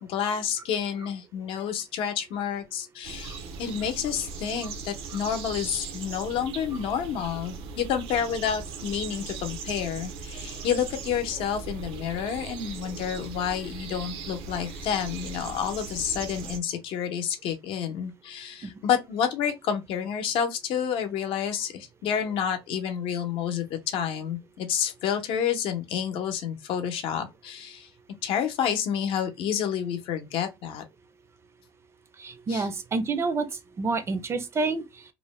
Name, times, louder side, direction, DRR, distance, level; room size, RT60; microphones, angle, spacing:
voice 1, 0.0-27.9 28.2-30.8 32.5-32.7, left 8 dB, 70° left, 0.6 m, -29 dB
sound 1, 3.0-16.6, right 5 dB, 80° right, 0.5 m, -39 dB
voice 2, 32.2-33.5 33.8-34.8, right 3 dB, 30° right, 0.4 m, -28 dB
2.6 x 2.1 x 3.1 m
cardioid pair, 130°, 9 cm